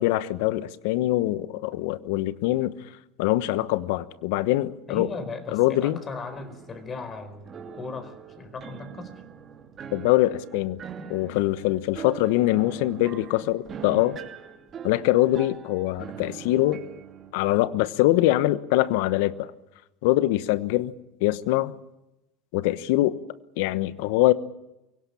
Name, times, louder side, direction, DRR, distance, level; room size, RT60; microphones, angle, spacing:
voice 1, 0.0-2.7 3.2-5.1 5.5-6.0 9.9-10.8 11.1-14.2 14.8-16.8 17.3-19.5 20.0-20.9 21.2-21.7 22.5-23.1 23.6-24.3, left 16 dB, 75° left, 15 dB, 1.0 m, -23 dB
voice 2, 4.9-9.2, left 3 dB, 35° left, 10 dB, 4.6 m, -37 dB
sound 1, 6.3-17.3, right 7 dB, 40° right, 2.9 m, -42 dB
23.5 x 17.5 x 8.6 m, 0.93 s
hypercardioid pair, 90°, 0 cm